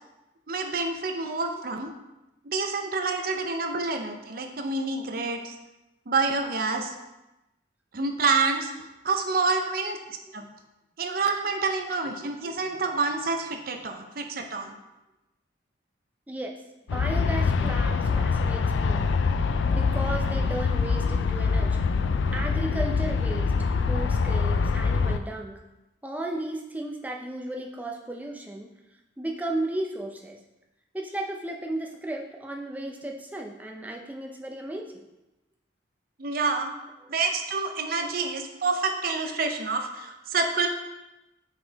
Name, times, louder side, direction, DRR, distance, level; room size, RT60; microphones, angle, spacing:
voice 1, 0.5-1.9 2.5-5.5 6.1-6.9 7.9-10.0 10.3-10.5 11.0-14.8 36.2-36.7 37.1-40.7, right 4 dB, 50° right, 5 dB, 0.6 m, -28 dB
Aircraft, 16.9-25.2, left 5 dB, 75° left, 0.3 m, -24 dB
voice 2, 16.9-19.1 19.6-21.8 22.3-25.6 26.0-28.7 29.2-30.4 30.9-35.0 37.0-37.1, right 1 dB, 10° right, 1 dB, 0.5 m, -35 dB
6.1 x 4.0 x 4.0 m, 0.98 s
head